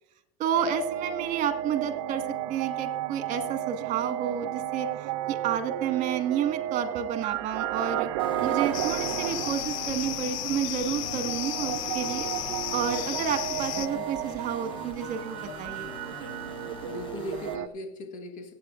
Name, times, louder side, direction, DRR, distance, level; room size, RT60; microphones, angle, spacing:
voice 1, 0.4-2.2 2.5-4.9 5.3-8.1 8.4-12.3 12.7-15.9, right 8 dB, 50° right, 7 dB, 1.7 m, -30 dB
sound 1, 0.5-17.7, right 13 dB, 80° right, 0.6 m, -33 dB
sound 2, 8.2-17.6, left 4 dB, 30° left, 1.3 m, -44 dB
sound 3, 8.7-13.9, left 14 dB, 85° left, 0.5 m, -33 dB
voice 2, 13.8-14.1 16.9-18.5, left 2 dB, 50° left, 2 dB, 2.1 m, -39 dB
22.0 x 8.6 x 2.6 m, 0.83 s
supercardioid pair, 115°, 17 cm